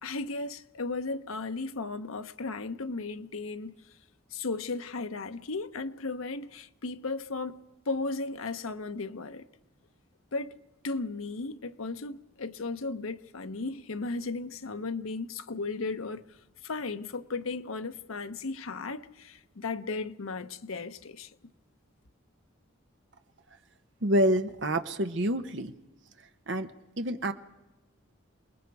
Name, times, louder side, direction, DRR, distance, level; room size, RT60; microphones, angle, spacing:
voice 1, 0.0-3.7 4.3-7.6 7.9-9.5 10.3-10.6 10.8-16.4 16.6-21.3, left 3 dB, 90° left, 0.8 m, -35 dB
voice 2, 24.0-25.7 26.5-26.7 27.0-27.3, right 1 dB, 60° right, 0.9 m, -27 dB
28.0 x 20.0 x 4.7 m
head